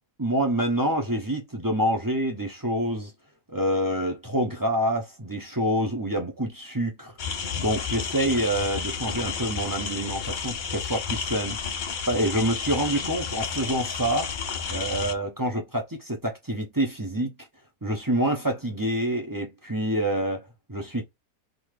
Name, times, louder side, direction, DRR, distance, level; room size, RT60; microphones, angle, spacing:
voice 1, 0.2-3.1 3.5-11.6 12.1-14.3 14.7-17.3 17.8-21.0, right 1 dB, 15° right, 0.8 m, -27 dB
sound 1, 7.2-15.1, left 6 dB, 55° left, 0.5 m, -31 dB
3.9 x 2.8 x 4.8 m
omnidirectional pair, 1.6 m